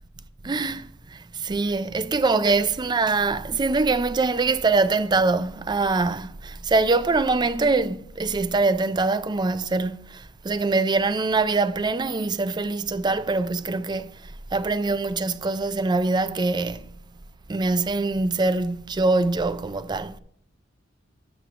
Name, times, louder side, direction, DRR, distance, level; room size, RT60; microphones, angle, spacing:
voice 1, 0.4-14.1 14.5-17.0 17.5-20.2, right 3 dB, 20° right, 0.4 m, -23 dB
12.5 x 7.7 x 2.5 m
head